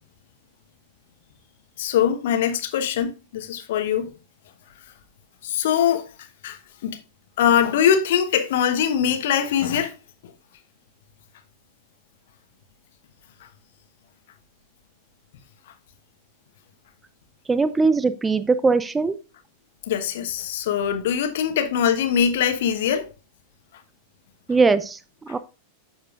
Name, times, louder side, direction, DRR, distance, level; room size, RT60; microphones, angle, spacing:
voice 1, 1.8-4.1 5.4-6.0 6.4-7.0 7.4-9.9 19.9-23.1, left 8 dB, 55° left, 1.2 m, -22 dB
voice 2, 17.5-19.2 24.5-25.4, right 4 dB, 10° right, 0.4 m, -20 dB
12.5 x 4.4 x 2.4 m
figure-of-eight pair, 90°, 0 cm